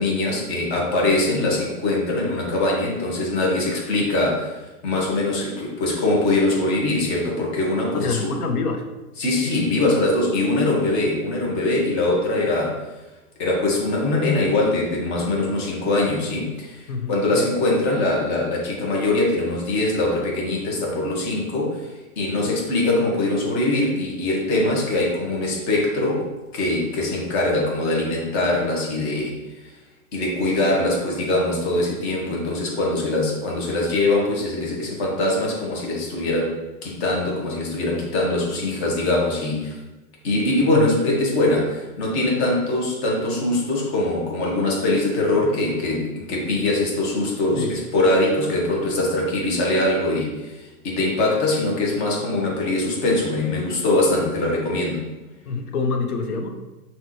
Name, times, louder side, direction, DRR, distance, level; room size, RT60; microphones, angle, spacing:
voice 1, 0.0-4.5 4.8-8.3 9.2-12.8 13.4-21.9 22.2-26.2 26.5-29.7 30.1-36.6 36.8-39.7 40.2-55.1, left 2 dB, 45° left, -3 dB, 1.5 m, -22 dB
voice 2, 7.9-8.8 16.9-17.4 40.7-40.9 47.5-47.8 55.5-56.6, left 4 dB, 70° left, 5 dB, 0.9 m, -26 dB
5.9 x 3.0 x 3.0 m, 1.1 s
hypercardioid pair, 120°, 45 cm